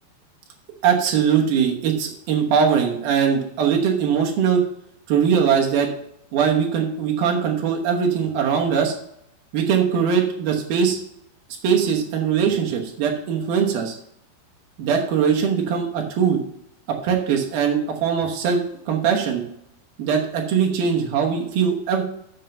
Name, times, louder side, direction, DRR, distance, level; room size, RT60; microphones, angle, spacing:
voice 1, 0.8-4.6 5.1-5.9 6.3-8.9 9.5-11.0 11.6-13.9 14.8-16.4 16.9-19.4 20.0-22.0, right 7 dB, 70° right, 1 dB, 2.5 m, -21 dB
7.8 x 6.4 x 5.5 m, 0.75 s
omnidirectional pair, 5.5 m